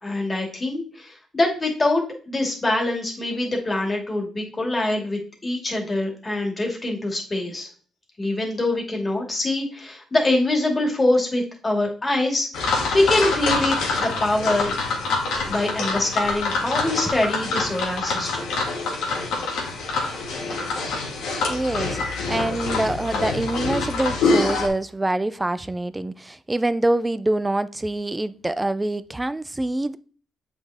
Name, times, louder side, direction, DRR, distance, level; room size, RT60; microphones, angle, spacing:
voice 1, 0.0-7.7 8.2-14.7 15.5-18.4, left 2 dB, 25° left, 2.5 m, -24 dB
sound 1, 12.5-24.7, left 3 dB, 85° left, 2.3 m, -25 dB
voice 2, 21.5-22.0 22.3-30.0, right 2 dB, 15° right, 0.5 m, -25 dB
7.8 x 5.4 x 3.6 m
cardioid pair, 90°, 0 cm